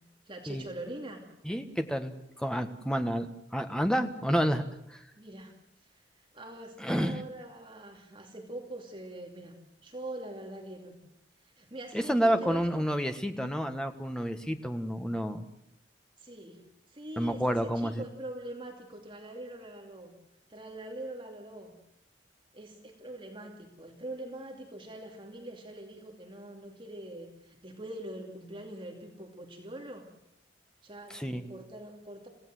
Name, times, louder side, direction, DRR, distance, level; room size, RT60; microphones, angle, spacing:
voice 1, 0.2-1.2 5.1-5.5 5.8-6.0 6.3-11.1 11.4-12.8 16.2-20.1 20.5-21.8 22.5-30.1 30.8-32.3, right 1 dB, 30° right, 2 dB, 2.6 m, -43 dB
voice 2, 1.4-3.3 3.5-4.6 4.9-5.0 6.8-7.2 11.9-15.5 17.2-18.0 31.1-31.5, equal, 5° left, 7 dB, 1.5 m, -29 dB
27.5 x 16.5 x 7.8 m, 0.82 s
head